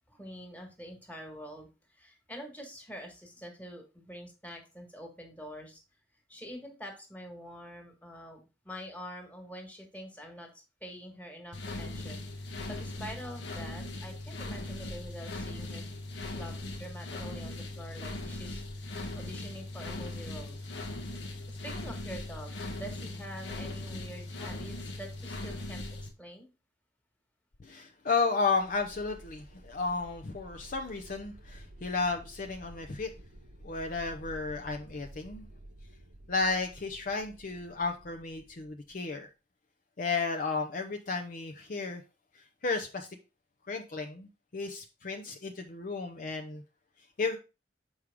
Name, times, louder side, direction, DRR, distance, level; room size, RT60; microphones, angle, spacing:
voice 1, 0.1-1.7 1.9-5.8 6.3-8.4 8.6-10.5 10.8-12.2 12.7-15.8 16.4-18.6 19.1-20.6 21.5-25.8 26.2-26.5, equal, 10° left, 2 dB, 1.6 m, -45 dB
sound 1, 11.5-26.1, left 2 dB, 80° left, 1.1 m, -39 dB
voice 2, 27.6-33.1 33.6-35.4 36.3-39.3 40.0-42.0 42.3-43.1 43.7-46.6 47.2-47.4, left 4 dB, 50° left, 4 dB, 0.6 m, -33 dB
sound 2, 28.6-39.2, right 1 dB, 90° right, 1.1 m, -51 dB
6.3 x 4.8 x 3.6 m, 0.29 s
head